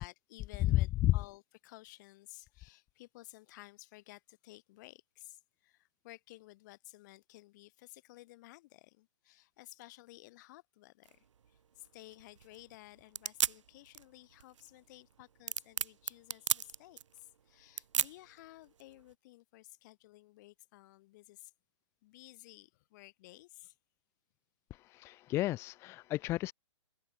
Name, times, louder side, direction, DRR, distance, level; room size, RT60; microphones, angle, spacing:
voice 1, 0.0-21.5 22.0-23.8, left 19 dB, 40° left, 4.2 m, -55 dB
voice 2, 0.7-1.2 24.7-26.5, left 16 dB, 15° left, 0.5 m, -31 dB
sound 1, 11.0-19.1, right 8 dB, 80° right, 0.7 m, -38 dB
hypercardioid pair, 145°, 16 cm